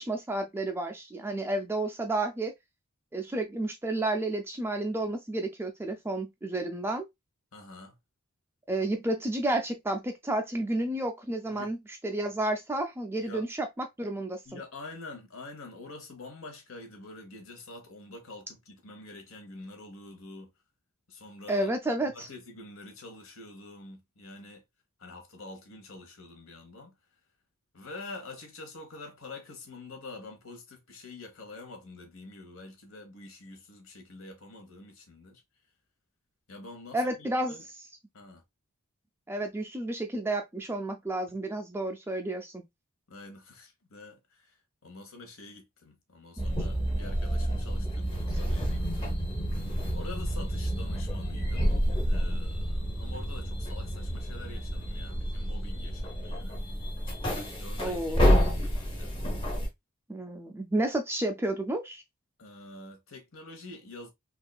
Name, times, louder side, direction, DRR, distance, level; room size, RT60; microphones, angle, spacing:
voice 1, 0.0-2.5 3.1-7.0 8.7-11.8 12.0-13.7 14.0-14.6 21.5-22.3 36.9-37.5 39.3-42.6 57.8-58.2 60.1-62.0, right 1 dB, 10° right, 0.3 m, -31 dB
voice 2, 7.5-8.0 11.5-11.7 13.2-13.4 14.4-20.5 21.1-21.7 22.0-24.6 25.0-26.9 27.7-35.4 36.5-37.6 38.1-38.4 43.1-44.6 44.8-49.1 49.9-56.6 57.6-59.1 62.4-64.1, left 2 dB, 70° left, 1.0 m, -46 dB
sound 1, 46.4-59.7, equal, 25° left, 0.8 m, -29 dB
3.5 x 2.5 x 2.2 m
head